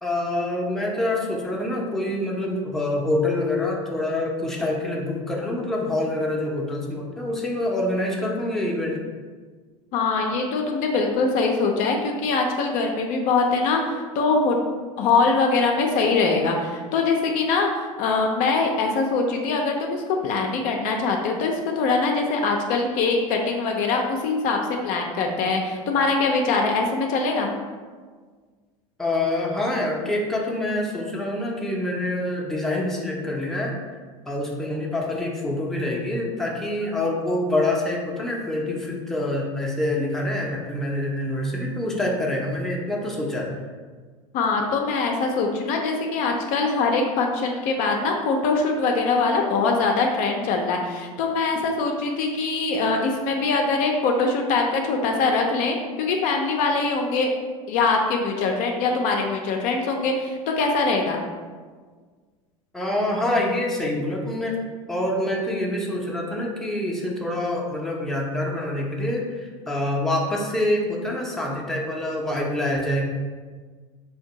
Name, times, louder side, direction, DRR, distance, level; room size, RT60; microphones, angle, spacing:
voice 1, 0.0-9.0 29.0-33.8 34.3-43.5 62.7-64.6 64.9-73.0, left 1 dB, ahead, -2 dB, 0.5 m, -26 dB
voice 2, 9.9-14.6 15.0-27.5 44.3-57.3 57.7-61.2, left 4 dB, 55° left, 2 dB, 0.4 m, -23 dB
2.6 x 2.2 x 3.8 m, 1.5 s
hypercardioid pair, 95°, 17 cm